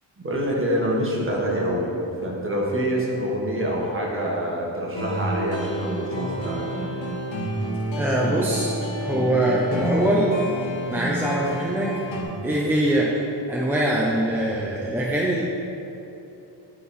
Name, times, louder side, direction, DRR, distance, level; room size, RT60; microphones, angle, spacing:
voice 1, 0.2-1.9 2.2-6.7, equal, 30° right, -3 dB, 1.4 m, -26 dB
sound 1, 4.9-12.2, equal, 80° left, 1.2 m, -29 dB
voice 2, 7.9-10.4 10.9-12.0 12.4-13.2 13.5-15.4, right 1 dB, 5° right, -5 dB, 0.7 m, -23 dB
10.5 x 3.7 x 4.3 m, 2.9 s
wide cardioid pair, 100°, 44 cm